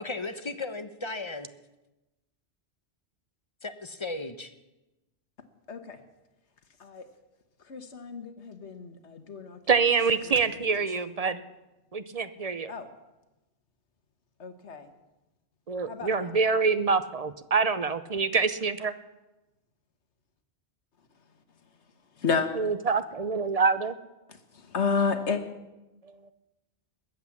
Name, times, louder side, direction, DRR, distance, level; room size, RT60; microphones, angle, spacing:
voice 1, 0.0-1.5 3.6-4.5, left 3 dB, 30° left, 10 dB, 0.8 m, -35 dB
voice 2, 5.7-6.0 6.8-7.1 7.6-9.8 10.2-10.9 12.7-12.9 14.4-14.9 15.9-16.4 22.1-22.5 24.3-25.4, left 5 dB, 75° left, 8 dB, 1.6 m, -32 dB
voice 3, 9.7-11.4 11.9-12.7 15.7-18.9 22.6-23.9, right 5 dB, 40° right, 13 dB, 0.6 m, -26 dB
21.0 x 8.3 x 7.2 m, 1.0 s
omnidirectional pair, 1.2 m